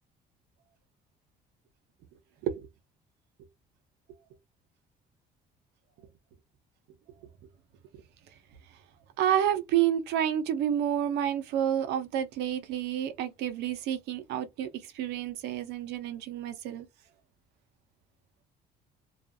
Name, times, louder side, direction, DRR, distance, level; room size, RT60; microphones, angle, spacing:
voice 1, 9.2-16.9, right 10 dB, 85° right, 0.7 m, -29 dB
2.4 x 2.4 x 2.7 m
cardioid pair, 110°, 17 cm